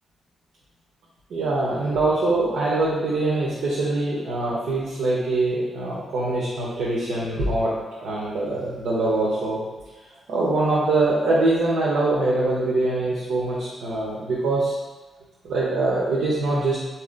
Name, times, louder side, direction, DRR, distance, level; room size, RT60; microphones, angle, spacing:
voice 1, 1.3-7.7 8.0-9.6 10.3-14.7 15.4-16.8, right 2 dB, 80° right, -6 dB, 1.0 m, -23 dB
4.4 x 2.9 x 3.8 m, 1.2 s
wide cardioid pair, 135°, 0 cm